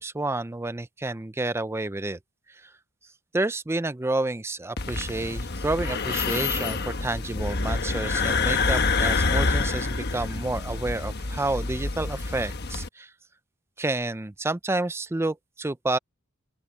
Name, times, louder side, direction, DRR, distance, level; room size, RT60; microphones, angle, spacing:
voice 1, 0.0-2.2 3.3-13.1 13.8-16.0, right 2 dB, 10° right, 0.4 m, -29 dB
sound 1, 4.8-12.9, left 4 dB, 50° left, 1.2 m, -27 dB
open air
head